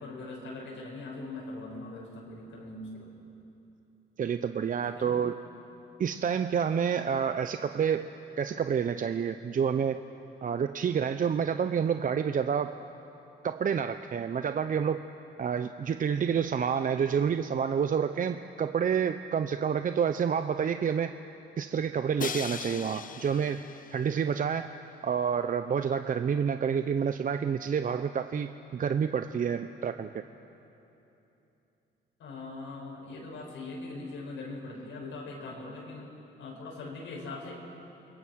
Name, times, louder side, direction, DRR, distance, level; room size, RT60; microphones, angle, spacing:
voice 1, 0.0-3.1 4.9-5.2 32.2-36.1 36.4-37.5, left 2 dB, 80° left, -3 dB, 6.6 m, -41 dB
voice 2, 4.2-5.4 6.0-8.1 8.4-10.0 10.4-12.8 13.4-15.0 15.4-21.1 21.6-23.6 23.9-24.7 25.0-30.1, right 7 dB, 45° right, 9 dB, 0.7 m, -28 dB
Crash cymbal, 22.2-24.2, left 6 dB, 45° left, 1.0 m, -39 dB
28.5 x 22.0 x 6.4 m, 2.9 s
cardioid pair, 90°, 20 cm